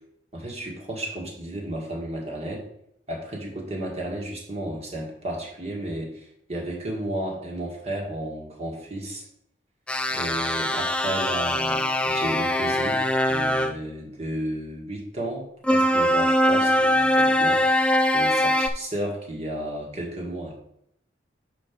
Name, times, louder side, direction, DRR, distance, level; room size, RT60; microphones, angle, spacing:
voice 1, 0.3-2.7 3.1-9.2 10.1-17.8 18.1-20.6, right 1 dB, 35° right, -1 dB, 1.7 m, -33 dB
sound 1, 9.9-13.7 15.6-18.7, left 1 dB, 5° left, 0.4 m, -22 dB
5.4 x 4.5 x 6.0 m, 0.74 s
head